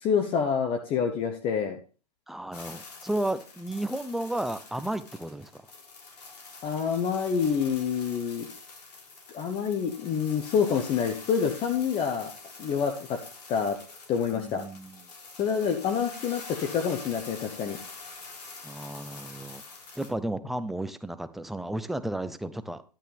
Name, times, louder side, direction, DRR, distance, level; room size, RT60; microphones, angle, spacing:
voice 1, 0.0-1.8 6.6-8.5 9.3-12.3 12.6-13.2 13.5-13.8 14.1-14.6 15.4-17.8, left 7 dB, 25° left, 5 dB, 1.1 m, -27 dB
voice 2, 2.3-5.6 14.3-15.0 18.6-19.6 20.0-22.8, right 1 dB, ahead, 11 dB, 0.5 m, -33 dB
sound 1, 2.5-20.1, left 4 dB, 80° left, 3.6 m, -46 dB
10.5 x 9.1 x 3.4 m, 0.35 s
hypercardioid pair, 120°, 20 cm